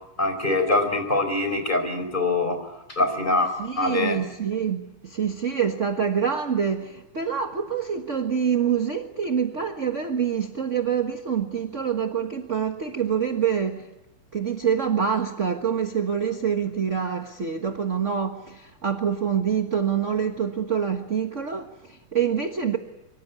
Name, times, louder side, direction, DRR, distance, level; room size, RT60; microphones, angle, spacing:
voice 1, 0.2-2.6 2.9-4.2, left 2 dB, 15° left, 4.6 m, -24 dB
voice 2, 3.6-13.9 14.3-22.8, right 7 dB, 40° right, 1.1 m, -26 dB
25.0 x 24.5 x 9.7 m
omnidirectional pair, 3.5 m